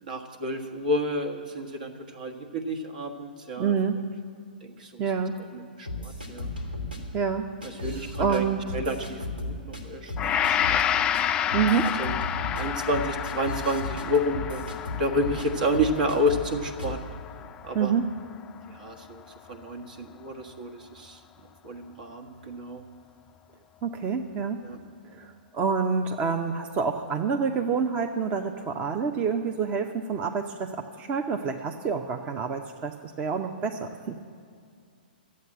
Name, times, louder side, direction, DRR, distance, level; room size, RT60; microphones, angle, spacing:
voice 1, 0.0-3.7 4.6-5.0 5.5-6.5 7.8-8.5 8.7-11.1 12.0-12.1 12.5-14.6 15.0-17.0 17.6-17.9 18.7-19.2 19.5-21.2 21.6-22.8 24.6-24.8, equal, 65° right, 4 dB, 1.5 m, -30 dB
voice 2, 3.6-4.0 5.0-5.4 7.1-7.5 7.9-8.7 11.5-11.9 17.7-18.1 23.8-24.6 25.1-34.2, right 6 dB, 25° right, 5 dB, 0.7 m, -27 dB
sound 1, 5.9-7.0 7.6-8.4 8.7-9.8 10.1-10.8 11.1-11.2 11.5-15.5 15.7-16.5 16.8-17.0, left 2 dB, 90° right, 2.8 m, -35 dB
Gong, 10.2-18.5 18.9-19.1, left 9 dB, 20° left, 0.3 m, -30 dB
13.5 x 8.5 x 8.8 m, 2.3 s
figure-of-eight pair, 115°, 5 cm